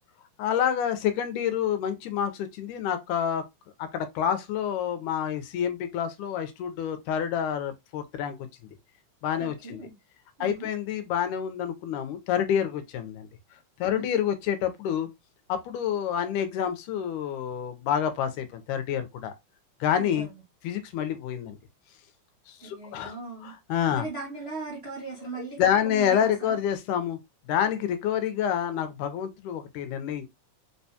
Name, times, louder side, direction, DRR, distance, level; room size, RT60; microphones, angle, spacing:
voice 1, 0.4-3.4 3.8-8.4 9.2-9.8 10.4-13.3 13.8-15.1 15.5-19.3 19.8-20.3 20.6-21.6 22.5-23.2 23.4-24.1 25.4-27.2 27.5-30.3, left 9 dB, 80° left, 2.0 m, -28 dB
voice 2, 9.4-9.9 10.4-10.7 20.0-20.3 22.6-23.5 23.9-26.3, right 3 dB, 70° right, 0.6 m, -38 dB
4.8 x 2.2 x 2.7 m
omnidirectional pair, 3.6 m